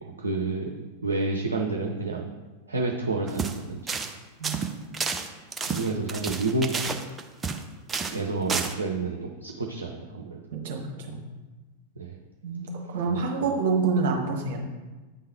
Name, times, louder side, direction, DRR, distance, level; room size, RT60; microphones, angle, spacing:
voice 1, 0.0-2.3 2.7-3.9 5.7-6.7 8.1-10.4 12.0-12.2 13.0-13.2, right 3 dB, 70° right, 1 dB, 0.6 m, -29 dB
sound 1, 3.3-3.6 3.9-4.1 4.4-7.6 7.9-8.2 8.5-8.7, right 5 dB, 15° right, 0.5 m, -30 dB
voice 2, 4.4-4.7 10.5-10.8 11.1-11.2 12.4-14.6, right 4 dB, 55° right, 1 dB, 1.2 m, -27 dB
8.9 x 3.8 x 4.3 m, 1.2 s
figure-of-eight pair, 90°, 0 cm